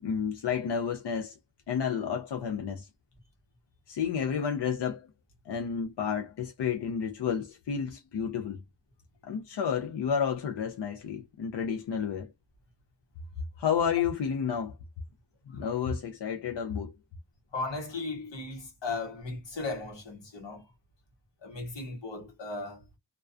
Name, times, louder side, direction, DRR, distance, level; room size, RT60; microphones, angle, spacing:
voice 1, 0.0-1.4 1.7-2.9 3.9-5.1 5.5-8.6 9.2-12.3 13.6-14.8 15.5-16.9, left 7 dB, 70° left, 0.5 m, -31 dB
voice 2, 17.5-20.7 21.4-22.8, left 3 dB, 85° left, 1.0 m, -37 dB
2.3 x 2.2 x 2.4 m
wide cardioid pair, 75°, 43 cm